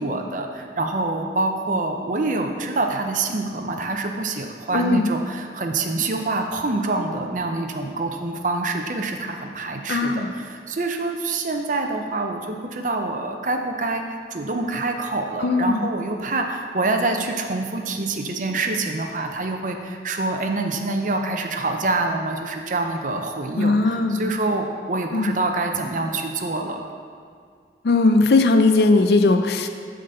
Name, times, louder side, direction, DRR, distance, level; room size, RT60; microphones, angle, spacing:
voice 1, 0.0-26.8, right 2 dB, 45° right, 4 dB, 0.6 m, -26 dB
voice 2, 4.7-5.1 9.9-10.3 15.4-15.9 23.6-24.3 25.1-25.4 27.8-29.7, left 3 dB, 65° left, 7 dB, 0.5 m, -18 dB
7.6 x 3.9 x 6.6 m, 2.1 s
head